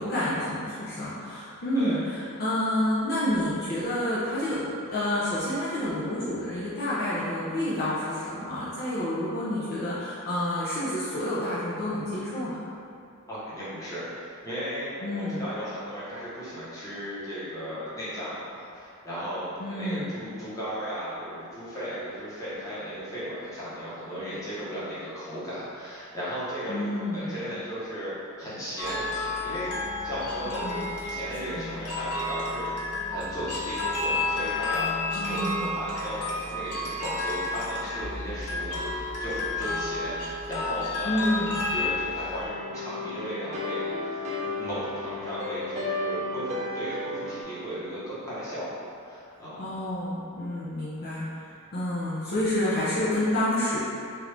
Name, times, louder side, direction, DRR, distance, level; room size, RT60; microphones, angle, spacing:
voice 1, 0.0-12.6 15.0-15.4 19.6-20.1 26.7-27.3 30.5-30.9 35.1-35.6 41.0-41.6 49.6-53.8, left 1 dB, 45° left, -9 dB, 0.5 m, -29 dB
voice 2, 13.3-28.1 28.4-29.7 30.0-32.7 33.1-41.4 41.7-49.6, equal, 15° left, -11 dB, 1.0 m, -36 dB
sound 1, 28.8-42.5, left 2 dB, 90° left, 0.6 m, -31 dB
sound 2, 42.4-47.4, left 2 dB, 30° right, 0.4 m, -33 dB
3.0 x 2.5 x 3.2 m, 2.5 s
head